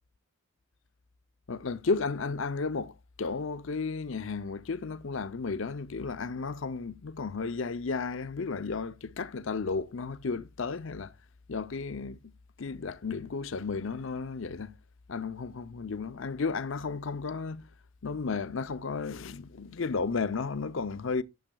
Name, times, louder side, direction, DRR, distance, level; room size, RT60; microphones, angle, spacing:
voice 1, 1.5-11.1 11.5-12.3 12.6-14.7 15.1-17.7 18.0-21.2, left 4 dB, 60° left, 0.6 m, -33 dB
12.0 x 7.2 x 2.3 m
head